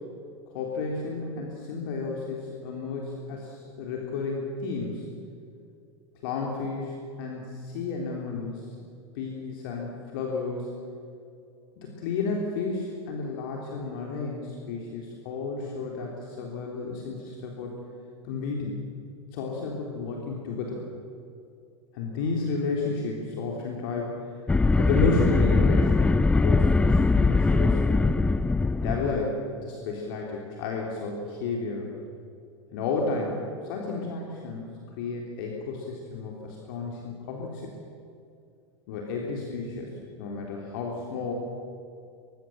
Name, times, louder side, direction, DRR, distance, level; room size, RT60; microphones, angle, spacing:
voice 1, 0.5-5.1 6.2-8.7 9.2-10.7 11.8-17.8 18.2-18.8 19.3-20.8 21.9-24.5 24.8-28.3 28.8-31.9 32.7-34.7 35.0-37.7 38.9-41.3, left 4 dB, 55° left, -1 dB, 3.6 m, -32 dB
sound 1, 24.5-29.2, left 3 dB, 10° left, 0.5 m, -21 dB
24.5 x 21.5 x 7.3 m, 2.6 s
figure-of-eight pair, 85°, 14 cm